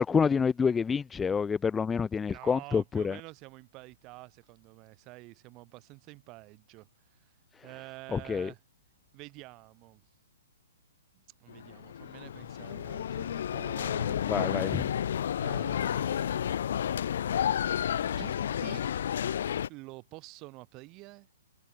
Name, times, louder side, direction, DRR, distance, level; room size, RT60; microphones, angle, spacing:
voice 1, 0.0-3.2 8.1-8.5 14.3-14.9, left 6 dB, 10° left, 0.3 m, -28 dB
voice 2, 2.3-6.9 7.6-8.6 9.1-10.0 11.4-14.2 15.4-16.4 18.2-18.9 19.7-21.3, right 23 dB, 30° right, 2.2 m, -48 dB
sound 1, 11.5-19.7, left 9 dB, 60° left, 0.7 m, -31 dB
figure-of-eight pair, 120°, 0 cm